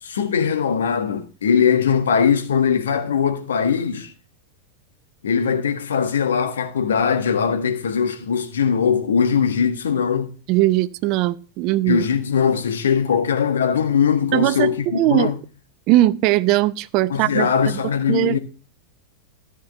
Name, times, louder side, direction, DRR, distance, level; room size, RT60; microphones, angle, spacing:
voice 1, 0.0-4.1 5.2-10.3 11.9-15.4 17.1-18.4, left 7 dB, 65° left, 1.5 m, -20 dB
voice 2, 10.5-12.0 14.3-15.3 15.9-17.8 18.1-18.4, right 16 dB, 40° right, 0.5 m, -19 dB
13.5 x 6.0 x 5.9 m
figure-of-eight pair, 90°, 0 cm